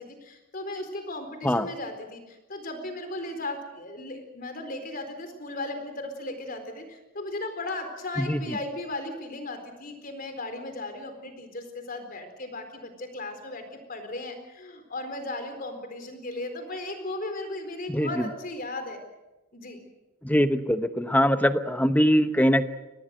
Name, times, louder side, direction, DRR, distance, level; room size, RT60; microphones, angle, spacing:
voice 1, 0.0-19.0 19.5-19.8, left 2 dB, 40° left, 7 dB, 4.2 m, -36 dB
voice 2, 17.9-18.3 20.2-22.6, equal, 5° left, 10 dB, 0.9 m, -22 dB
24.5 x 19.5 x 7.8 m, 1.1 s
head